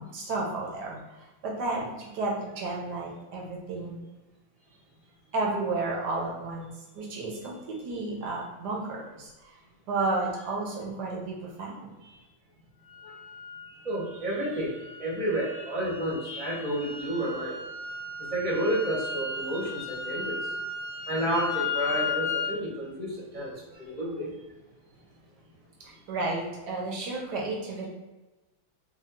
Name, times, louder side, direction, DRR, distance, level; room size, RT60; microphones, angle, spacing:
voice 1, 0.0-4.0 5.3-9.6 9.9-11.9 25.8-27.9, right 3 dB, 65° right, -2 dB, 1.3 m, -32 dB
sound 1, 12.9-22.5, left 4 dB, 65° left, 1.2 m, -36 dB
voice 2, 13.7-17.6 18.2-20.5 21.0-24.3, right 1 dB, 25° right, -6 dB, 0.9 m, -31 dB
3.6 x 2.4 x 3.7 m, 1.1 s
omnidirectional pair, 2.3 m